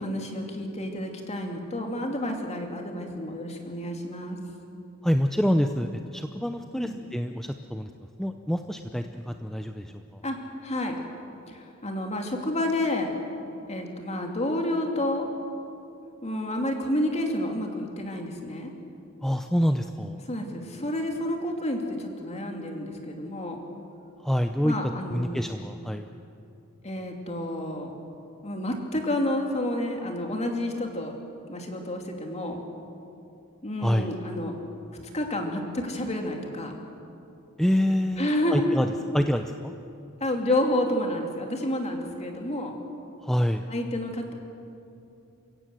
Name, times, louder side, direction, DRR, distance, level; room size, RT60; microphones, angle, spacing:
voice 1, 0.0-4.4 6.7-6.9 10.2-10.4 10.6-11.0 11.5-13.1 13.7-15.3 16.2-18.7 20.3-23.6 24.6-25.5 26.8-27.9 28.4-31.2 31.5-32.6 33.6-34.6 35.1-36.7 38.2-38.6 40.2-42.7 43.7-44.3, left 1 dB, 30° left, 2 dB, 2.8 m, -30 dB
voice 2, 5.0-7.9 8.2-10.2 19.2-20.2 24.2-24.8 25.1-26.1 33.8-34.1 37.6-38.9 39.1-39.7 43.2-43.6, equal, ahead, 6 dB, 0.6 m, -26 dB
29.0 x 17.0 x 7.7 m, 2.7 s
head